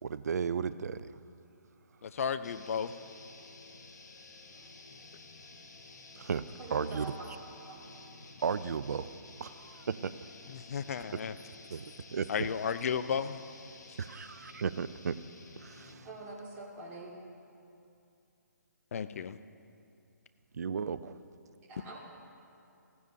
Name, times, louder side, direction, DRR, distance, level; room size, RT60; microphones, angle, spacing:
voice 1, 0.0-1.1 6.2-7.1 8.4-9.1 9.4-10.1 11.7-11.8 12.1-12.3 14.0-15.2 15.6-16.1 20.5-21.2, right 6 dB, 60° right, 15 dB, 0.4 m, -34 dB
voice 2, 2.0-2.9 10.5-11.3 12.3-13.4 13.9-14.0 18.9-19.4, left 7 dB, 50° left, 12 dB, 0.5 m, -33 dB
sound 1, 2.4-16.1, left 3 dB, 70° left, 1.3 m, -52 dB
voice 3, 6.6-7.1 7.7-7.8 16.0-17.1 21.7-22.0, right 3 dB, 20° right, -5 dB, 2.3 m, -44 dB
16.0 x 15.0 x 2.7 m, 2.6 s
figure-of-eight pair, 140°, 10 cm